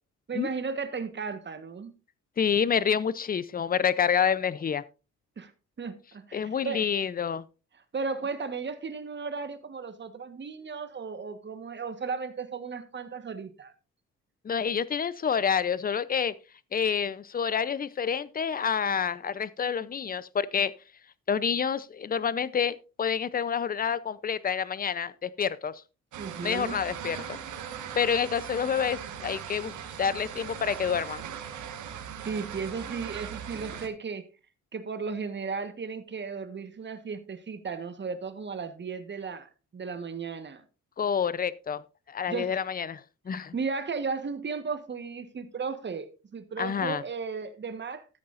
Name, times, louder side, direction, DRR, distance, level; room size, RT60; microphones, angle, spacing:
voice 1, 0.3-1.9 5.4-5.5 5.8-6.9 7.9-13.7 26.2-26.8 32.2-34.3 34.7-40.6 42.3-42.6 43.3-48.1, right 5 dB, 35° right, 1.4 m, -35 dB
voice 2, 2.4-4.8 6.3-7.4 14.4-16.3 16.7-20.7 21.3-25.8 26.4-27.4 28.0-29.7 30.0-31.2 41.0-41.8 42.1-43.0 43.3-43.5 46.6-47.0, left 7 dB, 30° left, 0.6 m, -28 dB
sound 1, 26.1-33.9, right 8 dB, 75° right, 1.8 m, -39 dB
14.0 x 8.4 x 2.6 m
cardioid pair, 90°, 30 cm